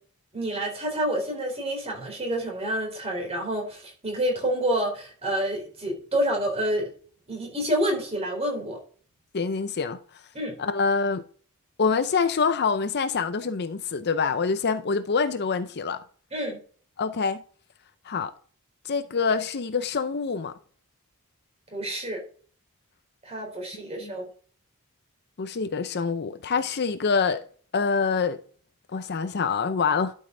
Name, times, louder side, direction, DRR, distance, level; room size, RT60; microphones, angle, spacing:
voice 1, 0.3-6.9 7.3-8.8 10.3-10.6 16.3-16.6 21.7-22.2 23.2-24.3, right 1 dB, 30° right, 4.1 m, -28 dB
voice 2, 9.3-10.0 10.6-11.2 11.8-16.0 17.0-17.4 18.1-18.3 18.8-20.5 23.7-24.1 25.4-27.4 27.7-28.4 28.9-30.1, left 5 dB, 50° left, 0.6 m, -26 dB
12.0 x 5.5 x 3.8 m
head